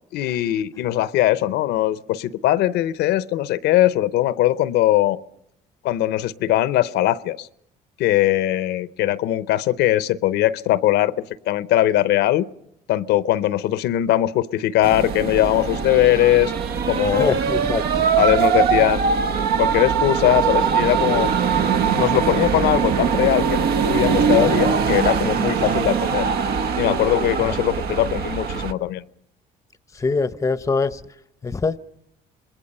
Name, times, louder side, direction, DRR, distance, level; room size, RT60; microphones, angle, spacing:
voice 1, 0.1-5.2 5.8-7.5 8.0-11.1 11.5-12.5 12.9-16.5 16.9-17.4 18.2-19.3 19.6-21.3 21.9-26.3 26.8-29.0, left 14 dB, 80° left, 0.7 m, -20 dB
sound 1, 14.8-28.7, right 6 dB, 65° right, 1.1 m, -21 dB
voice 2, 17.0-18.1 27.5-27.6 29.9-31.0 31.4-31.8, left 4 dB, 20° left, 0.7 m, -24 dB
26.5 x 21.0 x 5.5 m
cardioid pair, 110°, 17 cm